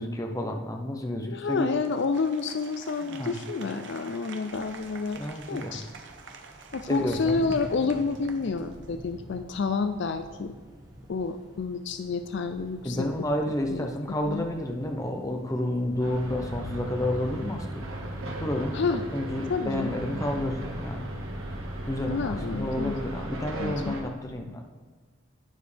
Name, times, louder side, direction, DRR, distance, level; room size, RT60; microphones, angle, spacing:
voice 1, 0.0-1.8 3.0-3.4 5.2-5.8 6.9-7.4 12.8-17.7 18.4-18.9 19.1-21.0 21.9-24.6, left 1 dB, 15° left, 3 dB, 0.8 m, -30 dB
voice 2, 1.3-5.8 6.7-10.6 11.1-13.1 13.7-13.9 14.2-14.5 18.7-19.0 19.5-20.0 22.1-22.9 23.6-24.0, left 4 dB, 55° left, 9 dB, 0.4 m, -29 dB
Applause, 1.5-9.1, right 4 dB, 60° right, 0.9 m, -47 dB
sound 1, 4.5-23.2, equal, 15° right, 1.4 m, -45 dB
sound 2, 16.0-24.0, right 1 dB, 75° right, 1.7 m, -36 dB
11.5 x 9.3 x 3.4 m, 1.4 s
head